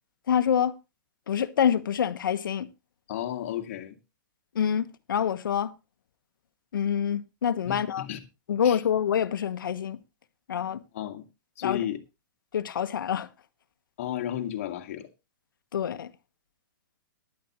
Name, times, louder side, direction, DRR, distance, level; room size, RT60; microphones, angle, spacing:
voice 1, 0.3-0.7 1.3-2.7 4.5-5.7 6.7-8.1 8.5-10.0 10.5-10.8 11.6-11.8 12.5-13.3 15.7-16.1, left 8 dB, 80° left, 1.3 m, -26 dB
voice 2, 3.1-4.0 7.7-8.2 8.6-8.8 10.9-11.2 11.6-12.0 14.0-15.1, left 11 dB, 40° left, 1.8 m, -33 dB
15.5 x 11.0 x 3.0 m
hypercardioid pair, 170°, 11 cm